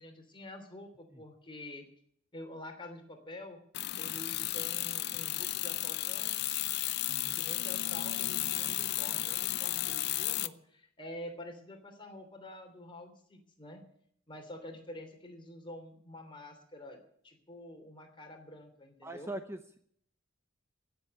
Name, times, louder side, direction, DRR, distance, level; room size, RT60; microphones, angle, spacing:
voice 1, 0.0-1.8 2.3-3.6 4.0-6.5 7.3-13.8 14.3-19.3, left 1 dB, 25° left, 4 dB, 3.1 m, -48 dB
sound 1, 3.7-10.5, left 15 dB, 55° left, 0.6 m, -33 dB
voice 2, 7.1-7.4 19.0-19.8, right 1 dB, 15° right, 8 dB, 0.7 m, -42 dB
16.5 x 7.6 x 8.8 m, 0.64 s
head